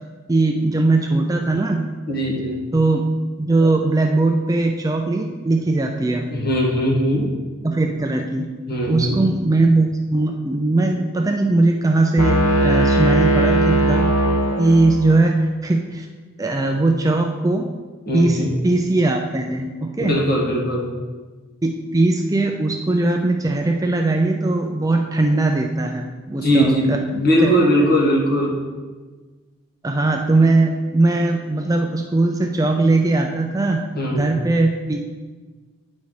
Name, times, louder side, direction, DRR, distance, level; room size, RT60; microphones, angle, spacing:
voice 1, 0.3-1.8 2.7-3.1 3.4-6.3 7.6-8.5 8.9-14.1 14.6-16.1 16.4-17.7 18.1-20.2 21.6-27.0 27.4-27.5 29.8-33.8 34.1-35.0, right 2 dB, 15° right, 3 dB, 0.4 m, -19 dB
voice 2, 2.1-2.6 6.3-7.3 8.7-9.2 14.5-14.6 18.1-18.5 20.0-20.9 26.4-28.6 33.9-34.4, equal, 45° left, -2 dB, 1.7 m, -20 dB
sound 1, 12.2-15.1, equal, 85° left, 1.1 m, -18 dB
9.2 x 4.2 x 4.8 m, 1.3 s
head